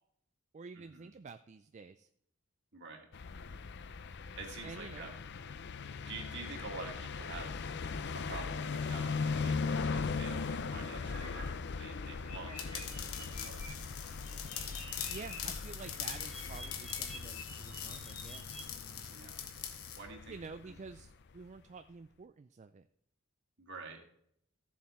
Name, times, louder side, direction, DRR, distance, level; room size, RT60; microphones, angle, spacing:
voice 1, 0.5-2.1 4.6-5.1 15.1-18.5 20.3-22.9, right 4 dB, 30° right, 10 dB, 0.3 m, -49 dB
voice 2, 2.7-3.1 4.3-5.1 6.1-13.7 19.1-19.4 20.0-20.3 20.6-20.8 23.6-24.0, right 4 dB, 55° right, 2 dB, 2.3 m, -48 dB
sound 1, 3.1-21.1, left 4 dB, 50° left, 0.5 m, -39 dB
sound 2, 11.2-11.4 11.8-13.7 14.0-15.4 15.7-18.6, left 1 dB, 90° left, 3.5 m, -50 dB
sound 3, 12.6-20.0, left 9 dB, 70° left, 1.4 m, -43 dB
14.5 x 7.3 x 4.3 m, 0.72 s
head